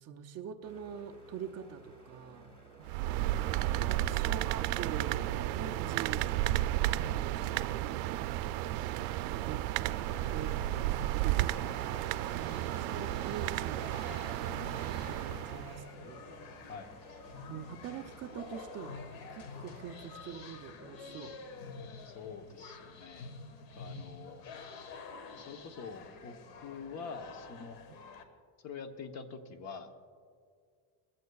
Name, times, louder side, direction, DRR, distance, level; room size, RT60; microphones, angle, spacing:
voice 1, 0.0-2.5 2.8-3.7 4.1-8.0 9.3-11.6 12.3-14.1 14.8-16.2 17.5-19.0 19.3-21.4 23.8-24.1, right 7 dB, 35° right, 6 dB, 0.5 m, -45 dB
sound 1, 0.6-20.4, right 3 dB, 10° left, 1.5 m, -57 dB
sound 2, 2.8-15.8, right 14 dB, 80° right, 0.6 m, -33 dB
voice 2, 8.6-9.5 16.7-16.9 22.0-23.3 23.7-24.5 25.3-27.8 28.6-29.9, left 5 dB, 35° left, 7 dB, 0.9 m, -46 dB
sound 3, 10.0-28.2, left 4 dB, 65° left, 1.5 m, -48 dB
21.0 x 15.0 x 2.3 m, 2.1 s
cardioid pair, 160°, 49 cm